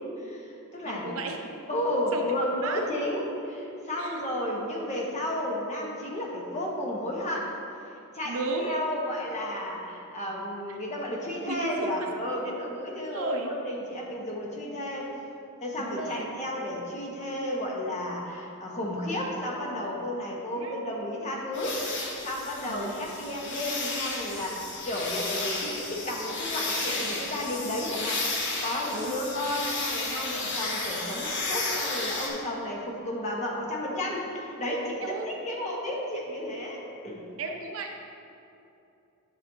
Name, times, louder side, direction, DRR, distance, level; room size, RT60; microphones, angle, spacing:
voice 1, 0.2-1.2 1.7-7.5 8.1-15.1 15.6-21.8 22.2-37.3, left 1 dB, 30° left, -2 dB, 1.2 m, -32 dB
voice 2, 0.8-1.4 2.1-2.3 2.6-2.8 4.0-4.2 8.2-8.9 10.7-10.8 11.4-12.5 13.0-13.5 15.8-16.3 20.5-20.7 22.6-23.1 28.9-29.2 29.6-29.7 35.0-35.5 37.4-38.1, right 3 dB, 70° right, 2 dB, 0.7 m, -34 dB
sound 1, 21.5-32.3, left 3 dB, 55° left, 1.1 m, -33 dB
10.5 x 6.2 x 2.8 m, 2.7 s
head